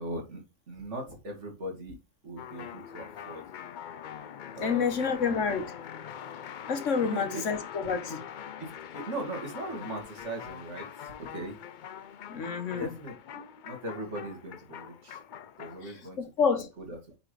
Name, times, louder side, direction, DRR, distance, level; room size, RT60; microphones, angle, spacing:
voice 1, 0.0-2.0 2.2-3.4 4.6-5.3 6.1-6.3 7.0-7.2 8.6-11.6 12.8-13.4 13.7-15.2 15.6-16.2 16.8-17.0, right 1 dB, 55° right, 2.4 m, -39 dB
sound 1, 2.4-15.9, left 9 dB, 80° left, 0.4 m, -43 dB
voice 2, 4.6-5.7 6.7-8.3 12.3-12.9 15.8-16.7, left 5 dB, 60° left, 1.5 m, -29 dB
8.7 x 4.4 x 3.2 m
omnidirectional pair, 1.4 m